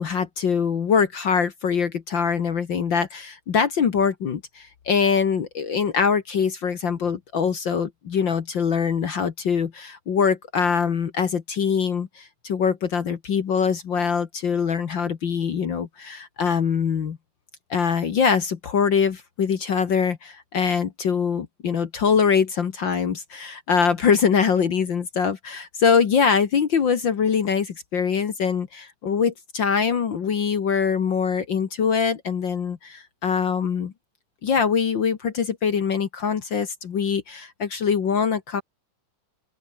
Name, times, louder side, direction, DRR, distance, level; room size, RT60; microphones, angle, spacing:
voice 1, 0.0-17.2 17.7-33.9 34.4-38.6, left 6 dB, 50° left, 1.4 m, -23 dB
open air
omnidirectional pair, 3.9 m